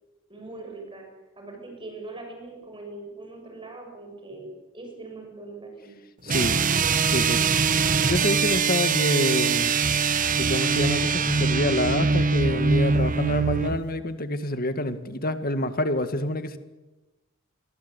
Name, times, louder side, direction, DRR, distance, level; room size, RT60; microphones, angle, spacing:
voice 1, 0.3-1.1 1.4-4.5 4.7-6.0, right 2 dB, 25° right, 2 dB, 7.1 m, -41 dB
voice 2, 6.2-6.6 7.0-7.4 8.1-9.8 10.4-16.6, left 1 dB, 45° left, 10 dB, 2.0 m, -27 dB
sound 1, 6.3-13.8, right 5 dB, 40° right, 1.1 m, -22 dB
28.5 x 23.0 x 8.3 m, 1.1 s
head